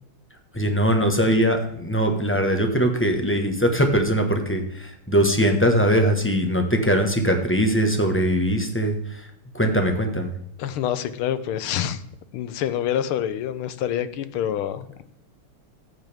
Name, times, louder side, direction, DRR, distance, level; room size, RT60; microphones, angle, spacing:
voice 1, 0.5-9.3 9.5-10.4, equal, 5° left, 4 dB, 1.0 m, -21 dB
voice 2, 10.6-12.0 12.3-15.0, left 10 dB, 80° left, 13 dB, 1.6 m, -27 dB
14.0 x 9.0 x 3.6 m, 0.73 s
omnidirectional pair, 2.4 m